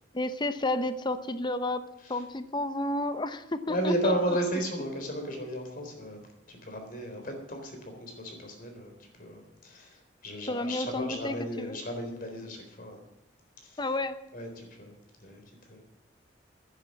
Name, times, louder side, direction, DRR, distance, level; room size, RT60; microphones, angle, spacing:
voice 1, 0.1-1.8 2.1-4.1 10.5-11.8 13.8-14.2, left 2 dB, 25° left, 11 dB, 0.8 m, -31 dB
voice 2, 3.7-8.9 9.2-13.0 13.6-13.8 14.3-14.9 15.2-15.4 15.7-15.8, equal, 50° left, 3 dB, 3.8 m, -34 dB
11.5 x 10.0 x 7.4 m, 0.90 s
head